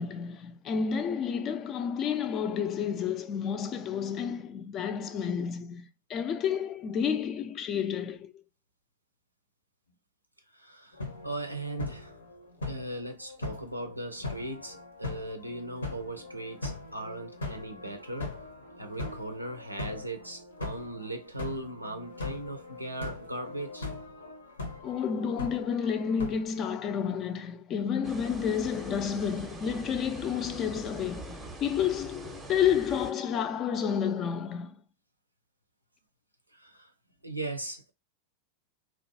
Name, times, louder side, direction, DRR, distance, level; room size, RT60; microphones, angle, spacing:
voice 1, 0.0-8.4 24.8-34.8, left 7 dB, 30° left, 0.4 m, -30 dB
voice 2, 10.5-12.1 12.7-18.3 18.8-23.9 36.5-36.9 37.2-37.9, right 2 dB, 85° right, 0.5 m, -38 dB
sound 1, 10.9-26.6, left 3 dB, 75° left, 0.7 m, -40 dB
sound 2, 28.0-33.1, right 2 dB, 10° right, 0.6 m, -43 dB
2.5 x 2.2 x 2.6 m
figure-of-eight pair, 90°, 0 cm